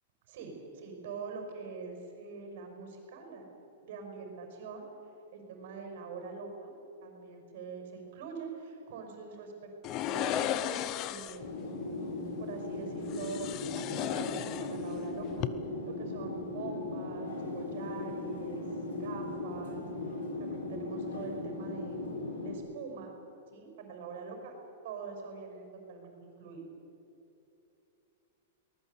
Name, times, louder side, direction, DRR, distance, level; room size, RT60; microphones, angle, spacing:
voice 1, 0.3-3.5 3.8-4.8 5.3-6.7 7.0-11.9 12.4-15.4 15.9-22.1 22.4-23.1 23.5-24.5 24.8-26.6, right 5 dB, 45° right, 3 dB, 5.8 m, -44 dB
sound 1, 9.8-11.5 13.1-15.0 15.3-15.5, left 12 dB, 25° left, 0.6 m, -35 dB
sound 2, 11.4-22.5, left 2 dB, 85° left, 7.4 m, -38 dB
23.0 x 20.0 x 8.3 m, 2.9 s
supercardioid pair, 180°, 0 cm